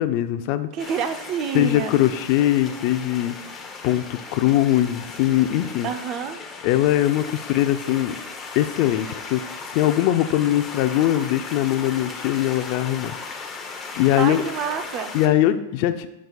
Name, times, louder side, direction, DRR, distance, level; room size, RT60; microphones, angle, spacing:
voice 1, 0.0-0.7 1.5-3.3 3.8-5.9 6.6-8.2 8.5-9.4 9.7-13.1 14.0-14.4 15.1-16.1, left 13 dB, 50° left, 10 dB, 0.5 m, -21 dB
voice 2, 0.7-2.0 5.8-6.4 14.2-15.1, right 7 dB, 35° right, 9 dB, 0.6 m, -28 dB
sound 1, 0.8-15.3, left 4 dB, 20° left, 0.9 m, -37 dB
10.5 x 6.1 x 2.4 m, 0.93 s
hypercardioid pair, 130°, 0 cm